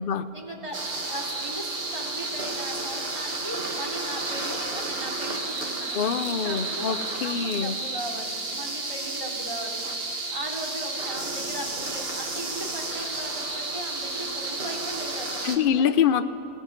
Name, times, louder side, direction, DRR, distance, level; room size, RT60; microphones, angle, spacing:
voice 1, 0.3-7.0 7.2-9.8 10.3-15.9, right 1 dB, 20° right, -1 dB, 3.0 m, -38 dB
sound 1, 0.7-15.6, right 2 dB, 40° right, 1.9 m, -32 dB
voice 2, 5.9-7.8 15.4-16.3, left 8 dB, 45° left, 10 dB, 0.7 m, -25 dB
30.0 x 18.0 x 6.0 m, 2.6 s
omnidirectional pair, 1.6 m